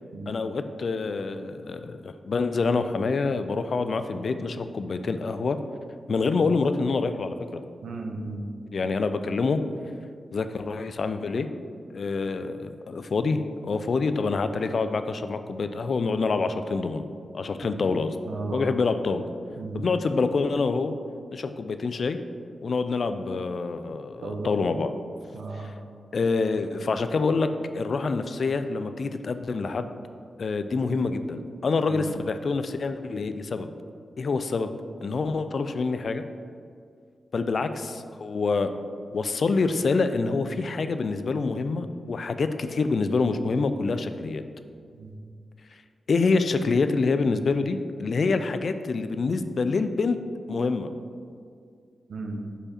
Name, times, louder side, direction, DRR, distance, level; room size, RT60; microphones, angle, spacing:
voice 1, 0.3-5.6 6.1-7.6 8.7-9.6 10.3-11.5 11.9-17.0 17.3-18.1 18.5-19.2 19.7-20.9 21.3-22.2 22.6-24.9 25.6-25.7 26.1-29.9 30.4-33.7 34.2-34.7 35.0-36.2 37.3-38.7 39.1-44.4 46.1-50.2 50.5-50.9, left 4 dB, 55° left, 10 dB, 0.3 m, -26 dB
voice 2, 7.8-8.4 17.6-17.7 18.2-18.8 19.6-19.9 24.2-24.5 25.3-25.7 31.9-32.1 44.9-45.1 52.1-52.4, right 3 dB, 70° right, 2 dB, 0.7 m, -34 dB
5.2 x 4.8 x 4.2 m, 2.2 s
wide cardioid pair, 140°, 0 cm